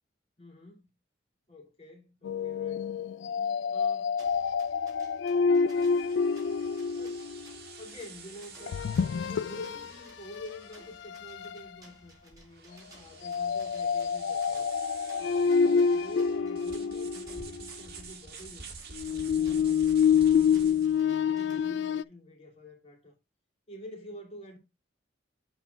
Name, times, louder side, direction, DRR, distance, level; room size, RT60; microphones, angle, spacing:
voice 1, 0.4-0.9 1.5-2.9 3.7-4.2 7.0-7.3 7.8-8.8 9.2-14.7 15.2-18.6 19.1-23.2 23.7-24.6, left 1 dB, 35° left, 2.7 m, -48 dB
sound 1, 2.2-7.5 8.7-9.9 10.4-10.5 11.1-11.6 13.2-17.7 18.9-22.0, left 6 dB, 70° left, 0.3 m, -27 dB
sound 2, 4.2-21.6, right 2 dB, 20° right, 3.9 m, -58 dB
sound 3, 5.7-21.0, right 5 dB, 60° right, 1.6 m, -49 dB
8.2 x 4.1 x 3.3 m
head